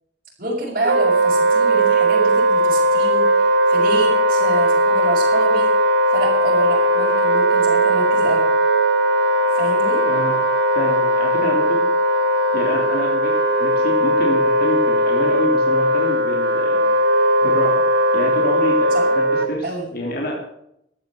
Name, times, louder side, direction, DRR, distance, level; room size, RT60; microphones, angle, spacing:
voice 1, 0.4-5.7 6.1-8.5 9.5-10.0 18.9-19.1 19.6-19.9, right 1 dB, 50° right, -9 dB, 6.5 m, -27 dB
Wind instrument woodwind instrument, 0.8-19.5, right 1 dB, 70° right, 1.6 m, -18 dB
voice 2, 10.0-10.4 10.7-11.8 12.5-13.3 13.6-16.9 17.4-17.8 18.1-20.4, equal, 55° left, -1 dB, 3.3 m, -27 dB
14.0 x 10.5 x 7.1 m, 0.76 s
head